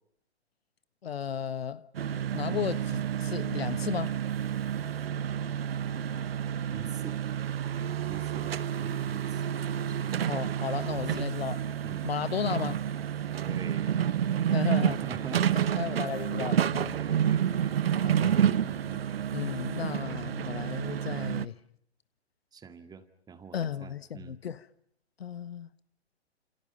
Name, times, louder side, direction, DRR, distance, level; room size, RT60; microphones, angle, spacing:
voice 1, 1.0-1.8 2.3-4.2 10.2-11.6 12.0-12.8 14.5-15.0 15.8-17.0 18.0-18.7 19.3-21.5 23.5-24.6 25.2-25.7, left 8 dB, 60° left, 1.4 m, -34 dB
sound 1, 1.9-21.5, right 9 dB, 60° right, 1.0 m, -29 dB
voice 2, 6.7-7.2 8.1-9.5 9.9-10.3 11.0-11.3 11.8-12.1 13.4-14.0 14.9-16.0 16.9-18.2 18.7-19.0 22.5-24.4, right 6 dB, 10° right, 2.0 m, -46 dB
30.0 x 28.5 x 5.5 m
figure-of-eight pair, 120°, 34 cm